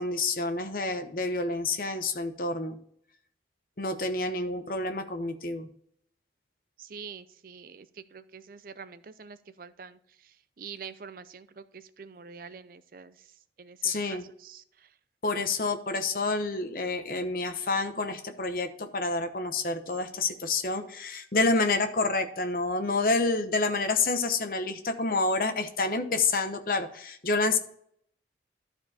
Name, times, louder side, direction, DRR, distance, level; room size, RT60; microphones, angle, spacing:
voice 1, 0.0-2.8 3.8-5.7 13.8-14.2 15.2-27.6, left 3 dB, 50° left, 7 dB, 0.9 m, -28 dB
voice 2, 6.8-14.9, right 6 dB, 50° right, 14 dB, 0.5 m, -46 dB
12.5 x 4.5 x 4.2 m, 0.67 s
head